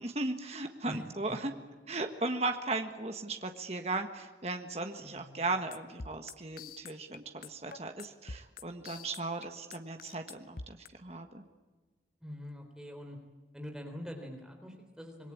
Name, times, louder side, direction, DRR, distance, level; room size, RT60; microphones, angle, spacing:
voice 1, 0.0-1.5 1.9-11.4, right 2 dB, 35° right, 5 dB, 1.6 m, -37 dB
voice 2, 0.9-1.5 5.0-5.4 12.2-13.2 13.5-15.3, left 1 dB, 5° right, 3 dB, 3.6 m, -44 dB
sound 1, 5.7-10.9, left 4 dB, 50° left, 0.8 m, -45 dB
26.5 x 21.5 x 8.7 m, 1.3 s
head